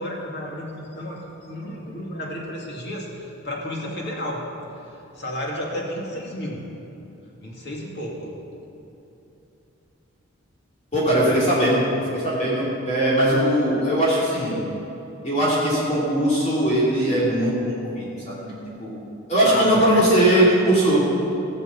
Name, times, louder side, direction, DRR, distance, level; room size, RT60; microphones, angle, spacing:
voice 1, 0.0-4.5 4.9-6.7 7.4-8.3 11.2-11.5 19.5-20.4, equal, 50° left, -2 dB, 2.5 m, -32 dB
voice 2, 10.9-11.8 12.1-14.5 15.2-18.5 18.8-18.9 19.3-21.0, right 1 dB, 30° left, -7 dB, 3.1 m, -20 dB
16.5 x 7.0 x 7.2 m, 2.9 s
head